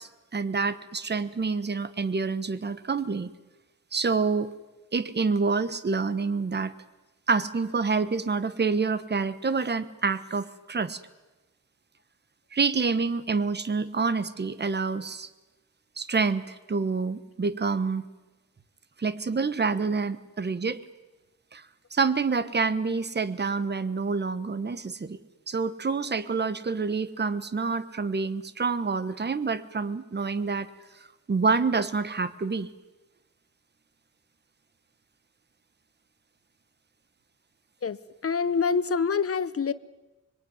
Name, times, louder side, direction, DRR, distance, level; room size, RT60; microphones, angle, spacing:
voice 1, 0.0-3.3 3.9-4.5 4.9-6.7 7.3-11.0 12.5-15.3 16.0-18.0 19.0-20.8 21.5-21.6 21.9-25.2 25.5-30.7 31.3-32.7, right 4 dB, 35° right, 13 dB, 1.2 m, -27 dB
voice 2, 37.8-39.7, left 5 dB, 45° left, 15 dB, 1.0 m, -26 dB
25.0 x 22.5 x 9.6 m, 1.1 s
wide cardioid pair, 125°, 31 cm